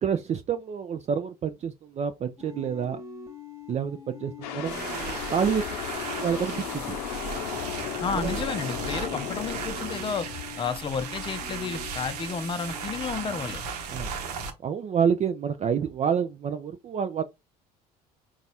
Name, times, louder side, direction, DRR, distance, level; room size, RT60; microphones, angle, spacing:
voice 1, 0.0-3.0 3.7-5.6 5.9-7.0 8.1-8.5 13.9-14.1 14.6-17.2, right 7 dB, 35° right, 0.5 m, -28 dB
sound 1, 2.4-13.6, left 5 dB, 15° right, 1.2 m, -44 dB
sound 2, 4.4-10.7, left 9 dB, 80° left, 0.7 m, -35 dB
sound 3, 4.6-14.5, right 5 dB, 85° right, 0.8 m, -36 dB
voice 2, 8.0-10.3 10.6-13.6, left 6 dB, 25° left, 0.6 m, -31 dB
4.0 x 2.4 x 4.1 m
hypercardioid pair, 65°, 19 cm